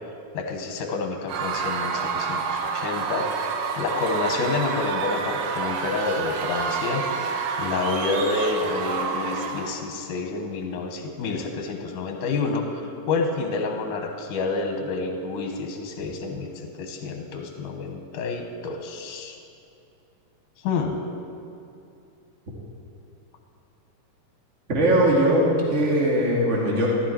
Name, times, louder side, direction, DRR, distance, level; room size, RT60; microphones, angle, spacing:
voice 1, 0.3-3.2 3.8-7.0 7.6-12.8 13.1-19.4 20.6-21.0, left 4 dB, 75° left, 3 dB, 2.7 m, -28 dB
Screaming / Cheering / Crowd, 1.3-9.8, right 5 dB, 90° right, 1.3 m, -28 dB
voice 2, 24.7-26.9, right 1 dB, 25° right, -4 dB, 2.2 m, -20 dB
14.0 x 13.0 x 4.6 m, 2.6 s
omnidirectional pair, 3.8 m